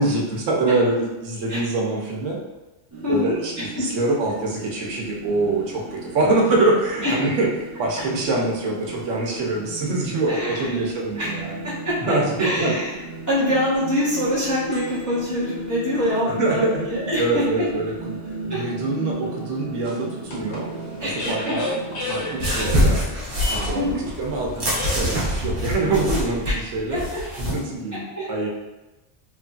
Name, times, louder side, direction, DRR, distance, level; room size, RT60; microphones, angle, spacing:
voice 1, 0.0-2.4 3.1-7.5 7.8-11.6 12.0-12.7 16.3-16.7 17.2-18.2 18.5-20.7 21.0-21.7 22.1-23.0 23.4-23.9 24.2-27.0 27.4-28.0 28.3-28.5, right 2 dB, 85° right, -2 dB, 1.0 m, -24 dB
sound 1, 2.9-22.7, right 2 dB, 15° right, 0.9 m, -36 dB
voice 2, 3.0-3.9 7.0-7.1 10.3-10.8 11.2-11.4 11.6-12.9 13.3-17.7 18.5-18.7 21.0-21.7 22.5-22.7 23.7-24.1 26.5-26.6 26.9-27.2 27.9-28.3, left 1 dB, 20° left, -10 dB, 0.5 m, -25 dB
sound 2, 13.7-15.2 15.9-16.0 19.8-25.2, left 1 dB, 70° left, 1.0 m, -33 dB
sound 3, 22.4-27.6, equal, 45° right, 0.9 m, -24 dB
3.0 x 2.5 x 2.3 m, 1.0 s
omnidirectional pair, 1.2 m